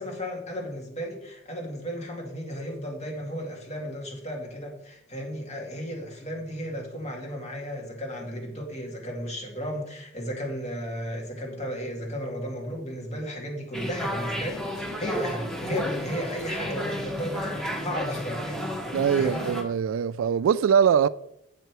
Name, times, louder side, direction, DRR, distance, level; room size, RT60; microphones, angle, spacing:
voice 1, 0.0-18.7 19.1-19.5, equal, 35° left, 2.1 m, -34 dB
sound 1, 13.7-19.6, equal, 5° left, 1.3 m, -32 dB
voice 2, 18.9-21.1, right 7 dB, 75° right, 0.3 m, -22 dB
7.9 x 7.5 x 4.6 m
head